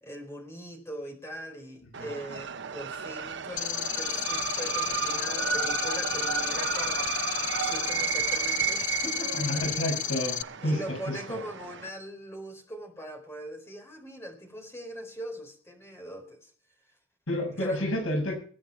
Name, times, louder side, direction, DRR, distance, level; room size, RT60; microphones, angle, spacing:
voice 1, 0.0-7.2 7.6-9.9 10.6-16.5 17.6-17.9, equal, 10° left, 3 dB, 4.0 m, -41 dB
sound 1, 1.9-11.9, right 8 dB, 55° right, 0.7 m, -33 dB
sound 2, 3.6-10.4, left 10 dB, 35° left, 0.6 m, -32 dB
voice 2, 9.4-11.4 17.3-18.3, left 1 dB, 70° left, 1 dB, 6.6 m, -30 dB
21.5 x 9.3 x 4.7 m, 0.42 s
head